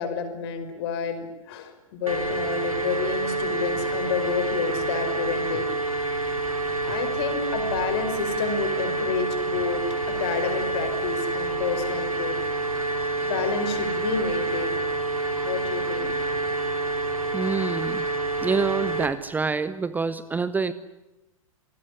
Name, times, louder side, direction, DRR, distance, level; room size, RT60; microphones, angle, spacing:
voice 1, 0.0-5.6 6.8-12.4 13.2-14.8 15.4-16.1, left 6 dB, 45° left, 8 dB, 5.6 m, -30 dB
sound 1, 2.1-19.1, right 3 dB, 90° right, 3.4 m, -28 dB
voice 2, 17.2-18.1 18.4-20.7, right 4 dB, 10° right, 15 dB, 0.9 m, -27 dB
27.5 x 20.0 x 9.9 m, 0.99 s
figure-of-eight pair, 105°, 17 cm